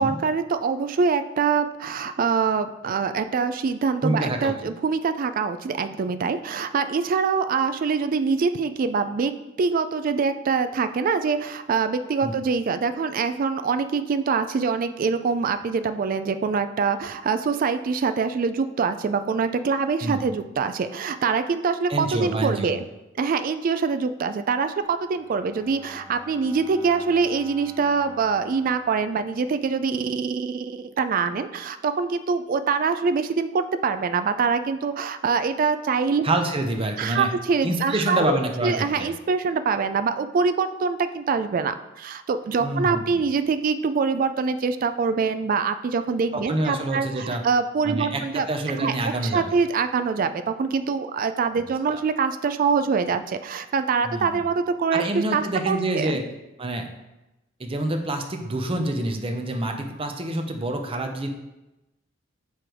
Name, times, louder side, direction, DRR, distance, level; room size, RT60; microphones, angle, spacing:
voice 1, 0.0-9.3 9.6-22.8 23.2-36.2 37.0-48.5 48.8-48.9 49.2-56.2, right 5 dB, 45° right, 10 dB, 0.3 m, -24 dB
voice 2, 4.0-4.5 12.2-12.3 20.0-20.2 21.9-22.8 36.2-37.3 37.6-39.1 42.6-43.0 46.3-47.4 47.8-49.4 51.9-52.0 54.0-54.3 54.9-56.2 56.6-56.9 57.6-61.3, right 1 dB, 30° right, 4 dB, 0.7 m, -27 dB
Bowed string instrument, 25.0-29.9, right 1 dB, 5° right, 0.9 m, -47 dB
8.2 x 3.3 x 4.5 m, 0.99 s
head